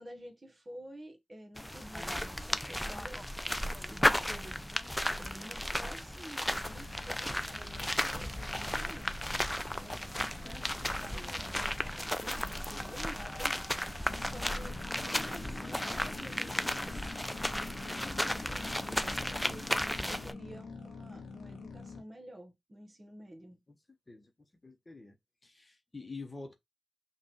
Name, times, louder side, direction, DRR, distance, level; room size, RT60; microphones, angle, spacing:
voice 1, 0.0-4.9 5.2-10.7 11.0-13.6 13.9-23.6, right 1 dB, 35° right, 1.4 m, -51 dB
sound 1, 1.6-20.3, left 1 dB, 10° left, 0.5 m, -34 dB
sound 2, 6.6-22.0, left 4 dB, 85° left, 1.0 m, -48 dB
voice 2, 15.0-15.4 24.1-25.2 25.4-26.5, left 3 dB, 30° left, 1.1 m, -47 dB
5.3 x 2.6 x 3.0 m
cardioid pair, 50°, 0 cm